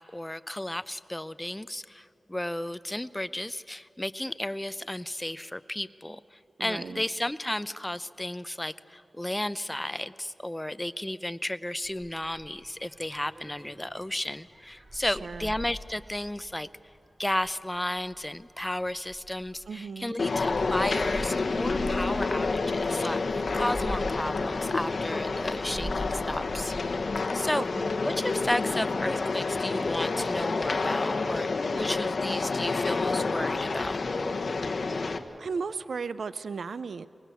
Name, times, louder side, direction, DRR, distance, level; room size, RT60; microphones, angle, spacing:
voice 1, 0.0-16.7 17.2-26.7 27.3-27.6 28.0-31.5 31.7-34.0, left 1 dB, 15° left, 15 dB, 0.6 m, -33 dB
voice 2, 6.6-7.1 15.0-15.5 19.7-20.2 27.5-27.9 35.4-37.1, right 5 dB, 85° right, 16 dB, 0.4 m, -36 dB
sound 1, 11.8-28.6 28.9-29.3, equal, 25° right, 4.8 m, -43 dB
sound 2, 20.2-35.2, left 3 dB, 70° left, 1.1 m, -29 dB
23.5 x 19.0 x 8.3 m, 2.7 s
cardioid pair, 55°, 0 cm